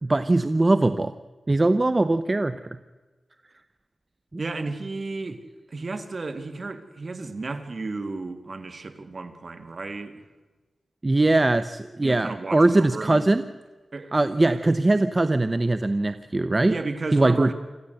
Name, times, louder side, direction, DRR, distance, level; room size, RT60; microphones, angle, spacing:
voice 1, 0.0-1.1 1.5-2.6 11.0-13.5 14.1-16.7 17.1-17.5, right 2 dB, 30° right, 12 dB, 0.7 m, -21 dB
voice 2, 4.4-5.4 5.7-10.2 12.0-13.3 13.9-14.1 14.5-14.6 16.7-17.5, right 3 dB, 45° right, 9 dB, 2.0 m, -33 dB
26.0 x 14.5 x 7.9 m, 1.3 s
wide cardioid pair, 75°, 0 cm